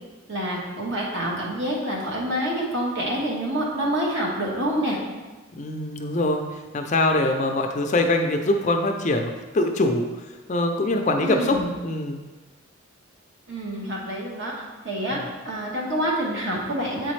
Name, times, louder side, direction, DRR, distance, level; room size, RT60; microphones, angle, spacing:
voice 1, 0.3-5.0 11.2-11.7 13.5-15.2 15.4-17.1, equal, 55° right, -3 dB, 1.3 m, -27 dB
voice 2, 5.5-6.4 6.7-10.1 10.5-12.2 15.1-15.2, left 2 dB, 35° left, 4 dB, 0.4 m, -23 dB
8.0 x 4.1 x 3.2 m, 1.3 s
head